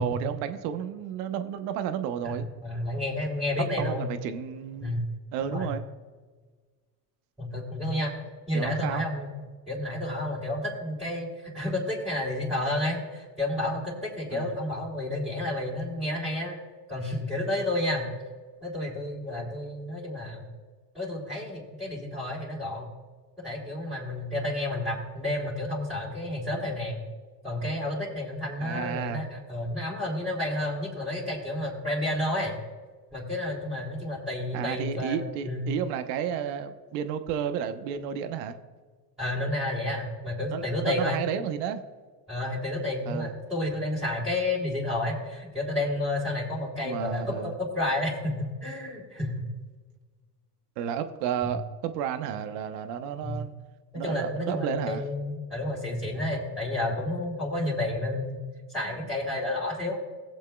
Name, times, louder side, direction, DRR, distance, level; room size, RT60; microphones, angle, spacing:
voice 1, 0.0-2.5 3.8-4.9 5.3-5.8 8.5-9.0 14.3-14.5 28.6-29.2 34.5-38.6 40.5-41.8 43.1-43.3 46.8-47.5 50.8-53.5 53.9-55.0, right 8 dB, 80° right, 8 dB, 1.1 m, -32 dB
voice 2, 2.2-4.1 4.8-5.1 5.4-5.7 7.4-8.1 8.5-9.3 9.7-11.3 11.5-16.6 16.9-18.1 18.6-20.5 20.9-22.9 23.4-27.0 27.4-32.5 33.1-35.2 35.4-35.6 39.2-41.2 42.3-49.4 51.4-51.5 53.2-53.4 53.9-58.4 58.7-60.0, left 1 dB, ahead, -7 dB, 3.0 m, -30 dB
20.0 x 7.5 x 2.3 m, 1.4 s
supercardioid pair, 105°, 48 cm